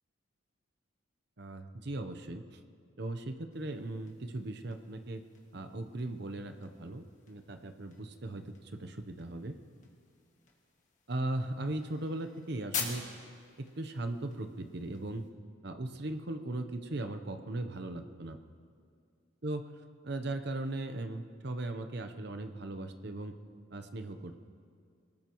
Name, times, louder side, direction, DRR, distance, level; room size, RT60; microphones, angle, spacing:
voice 1, 1.4-2.6 3.0-5.2 5.5-9.6 11.1-13.0 13.6-15.2 15.6-18.4 19.4-19.7 20.0-23.3 23.7-24.4, right 2 dB, 55° right, 8 dB, 0.9 m, -38 dB
sound 1, 3.5-15.3, left 6 dB, 40° left, 1.9 m, -47 dB
23.5 x 19.5 x 3.1 m, 2.2 s
head